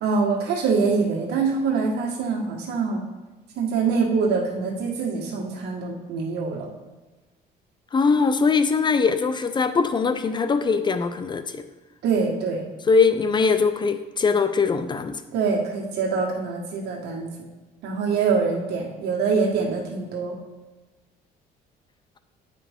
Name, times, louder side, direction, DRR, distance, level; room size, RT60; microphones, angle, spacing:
voice 1, 0.0-3.0 3.6-6.7 12.0-12.7 15.3-17.5 17.8-20.4, right 5 dB, 75° right, -1 dB, 1.6 m, -24 dB
voice 2, 7.9-11.6 12.9-15.2, left 5 dB, 25° left, 11 dB, 0.4 m, -21 dB
9.3 x 5.0 x 3.6 m, 1.2 s
cardioid pair, 110°, 17 cm